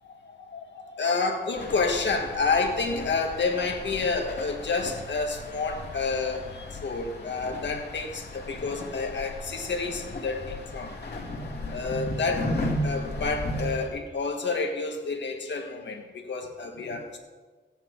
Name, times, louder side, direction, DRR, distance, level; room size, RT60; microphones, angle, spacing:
voice 1, 0.2-11.0 11.7-12.5 12.8-17.2, left 4 dB, 80° left, 3 dB, 1.7 m, -29 dB
sound 1, 1.6-13.9, left 1 dB, 65° left, 2.2 m, -35 dB
16.0 x 9.1 x 4.6 m, 1.4 s
wide cardioid pair, 130°, 18 cm